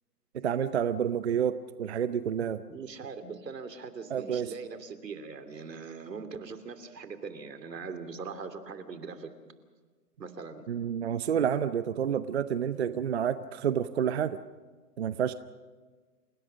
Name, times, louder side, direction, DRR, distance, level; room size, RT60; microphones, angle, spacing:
voice 1, 0.3-2.6 4.1-4.5 10.7-14.4 15.0-15.3, right 8 dB, 45° right, 13 dB, 0.7 m, -29 dB
voice 2, 2.7-9.3 10.2-10.7, right 5 dB, 85° right, 9 dB, 2.9 m, -41 dB
28.5 x 17.5 x 6.3 m, 1.4 s
hypercardioid pair, 160°, 48 cm